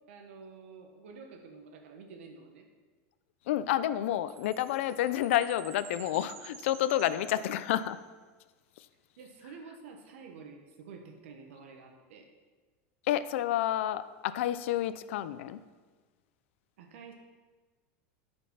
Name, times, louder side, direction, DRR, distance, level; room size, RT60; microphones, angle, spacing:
voice 1, 0.1-2.7 6.1-6.2 9.2-12.3 16.8-17.1, right 5 dB, 85° right, 3 dB, 1.3 m, -49 dB
voice 2, 3.5-8.0 13.1-15.6, left 12 dB, 80° left, 13 dB, 0.5 m, -29 dB
Chime, 4.3-8.0, right 9 dB, 70° right, 1.0 m, -51 dB
13.0 x 5.2 x 5.7 m, 1.4 s
supercardioid pair, 135°, 7 cm